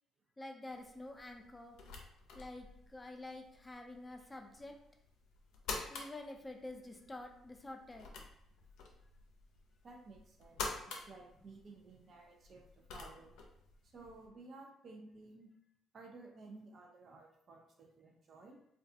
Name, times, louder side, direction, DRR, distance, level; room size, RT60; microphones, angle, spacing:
voice 1, 0.4-1.8 2.3-4.7 5.9-8.1, left 2 dB, 20° left, 3 dB, 0.5 m, -48 dB
sound 1, 0.7-14.3, left 4 dB, 75° left, 0.4 m, -49 dB
voice 2, 9.8-13.4 13.9-15.5 15.9-18.6, right 3 dB, 55° right, 1 dB, 0.5 m, -55 dB
2.3 x 2.3 x 2.7 m, 0.72 s
hypercardioid pair, 50°, 0 cm